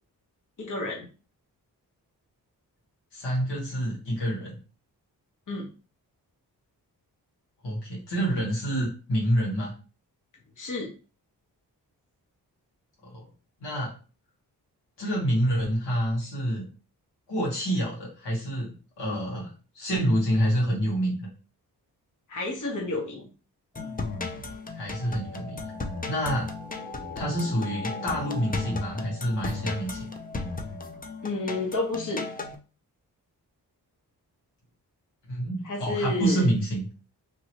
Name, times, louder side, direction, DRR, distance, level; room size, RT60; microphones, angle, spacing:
voice 1, 0.6-1.1 5.5-5.7 10.6-10.9 22.3-23.3 31.2-32.3 35.6-36.5, left 2 dB, 45° left, -1 dB, 1.2 m, -30 dB
voice 2, 3.1-4.6 7.6-9.7 13.0-13.2 13.6-13.9 15.0-16.7 17.3-21.3 24.7-25.6 26.1-26.5 27.1-30.1 35.3-36.8, equal, 90° left, -4 dB, 1.5 m, -27 dB
sound 1, 23.7-32.6, left 3 dB, 20° left, 0.6 m, -35 dB
3.0 x 2.7 x 2.9 m, 0.35 s
supercardioid pair, 40°, 41 cm